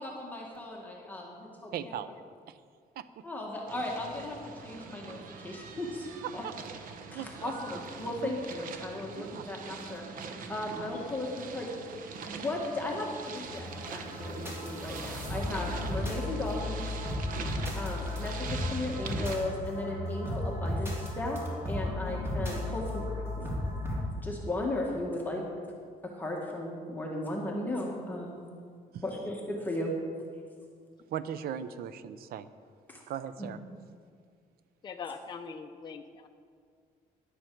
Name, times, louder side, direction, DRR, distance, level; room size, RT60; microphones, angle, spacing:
voice 1, 0.0-1.7 3.2-6.1 6.3-6.4 7.1-10.0 10.5-11.7 12.2-16.9 17.7-21.4 21.7-23.0 23.4-23.6 24.2-25.4 26.2-28.3 29.0-29.9 32.9-33.0 33.4-33.5, left 1 dB, 10° left, -2 dB, 1.5 m, -36 dB
voice 2, 1.7-2.1 2.5-2.6 3.0-3.1 6.2-6.5 7.1-7.5 8.2-8.4 9.2-9.4 10.7-11.0 28.9-29.0 31.1-32.5 33.1-33.6, right 9 dB, 85° right, 13 dB, 0.6 m, -38 dB
sound 1, 3.7-19.4, right 5 dB, 65° right, 1.0 m, -43 dB
sound 2, 13.4-24.0, left 1 dB, 15° right, 2.7 m, -35 dB
voice 3, 34.8-36.3, left 5 dB, 30° left, 5 dB, 0.6 m, -42 dB
12.5 x 10.0 x 4.6 m, 2.1 s
cardioid pair, 150°, 15 cm